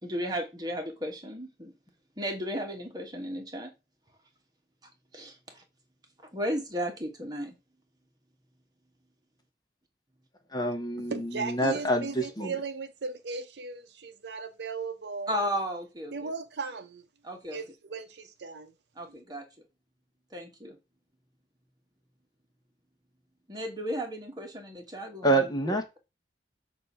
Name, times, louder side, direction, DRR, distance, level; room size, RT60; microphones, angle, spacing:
voice 1, 0.0-1.7 2.2-3.7 5.1-5.3 6.3-7.5 15.3-16.3 17.2-17.6 19.0-19.4 20.3-20.8 23.5-26.0, equal, 25° right, 1.4 m, -34 dB
voice 2, 10.5-12.5 25.2-25.8, right 1 dB, 25° left, 0.9 m, -27 dB
voice 3, 11.1-15.3 16.1-17.0 17.5-18.7 19.1-19.2, right 4 dB, 65° right, 0.6 m, -37 dB
6.7 x 2.7 x 5.5 m
head